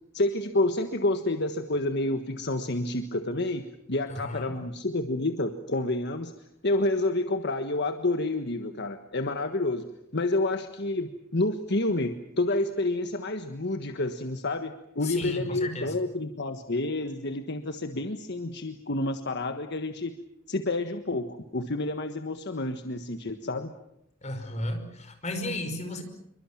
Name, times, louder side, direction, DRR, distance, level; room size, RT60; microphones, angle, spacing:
voice 1, 0.1-6.3 6.6-9.9 10.1-20.1 20.5-23.7, left 2 dB, 60° left, 7 dB, 1.5 m, -29 dB
voice 2, 4.1-4.6 15.0-16.0 24.2-26.0, left 1 dB, 35° left, 6 dB, 5.2 m, -34 dB
27.5 x 24.0 x 7.4 m, 0.81 s
head